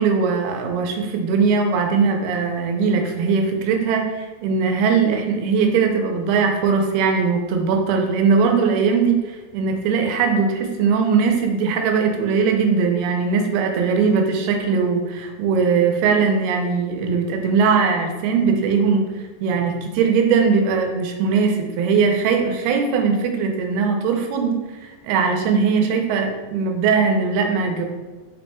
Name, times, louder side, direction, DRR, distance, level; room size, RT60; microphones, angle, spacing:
voice 1, 0.0-19.1 19.4-27.9, right 5 dB, 90° right, 3 dB, 2.6 m, -20 dB
5.6 x 4.1 x 2.3 m, 1.2 s
omnidirectional pair, 4.3 m